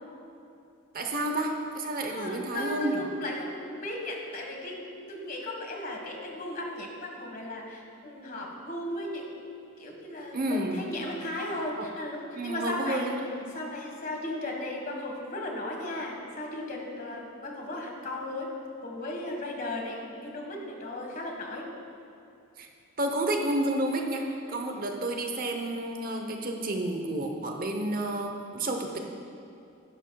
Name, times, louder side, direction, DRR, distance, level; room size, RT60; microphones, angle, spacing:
voice 1, 0.9-3.0 10.3-10.9 11.8-11.9 12.3-13.5 22.6-22.7 23.0-24.2 24.5-29.0, right 1 dB, 40° right, 3 dB, 0.9 m, -30 dB
voice 2, 2.1-9.4 9.8-13.2 13.5-18.5 18.8-21.7 24.5-24.7, left 1 dB, 40° left, 1 dB, 1.6 m, -36 dB
16.0 x 11.0 x 2.3 m, 2.7 s
head